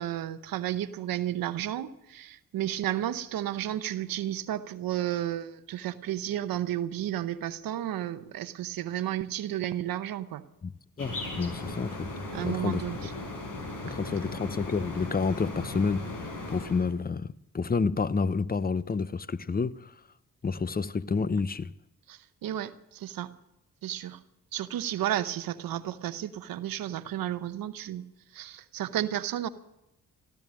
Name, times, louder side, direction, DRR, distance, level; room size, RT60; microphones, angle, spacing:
voice 1, 0.0-10.4 12.3-13.1 13.9-14.0 22.1-23.3 23.8-24.2 24.5-28.0 28.3-29.5, right 12 dB, 90° right, 0.8 m, -32 dB
sound 1, 11.0-16.9, left 2 dB, 75° left, 4.2 m, -37 dB
voice 2, 11.0-12.1 12.4-12.8 13.8-19.9 20.4-21.7, left 4 dB, 25° left, 0.7 m, -29 dB
15.5 x 13.0 x 6.3 m
cardioid pair, 55°, 34 cm